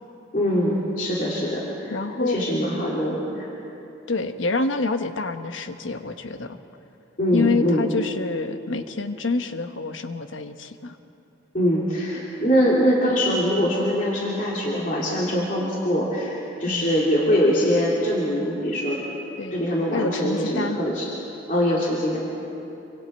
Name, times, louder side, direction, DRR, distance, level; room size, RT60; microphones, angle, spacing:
voice 1, 0.3-1.9 2.2-3.5 7.2-7.8 11.5-19.0 19.5-21.1 21.5-22.2, equal, 45° left, -5 dB, 2.9 m, -23 dB
voice 2, 1.9-2.6 4.1-6.6 7.3-11.0 16.7-16.9 19.4-19.6 19.9-20.8, left 3 dB, 90° left, 8 dB, 1.1 m, -27 dB
28.0 x 25.0 x 4.4 m, 2.9 s
head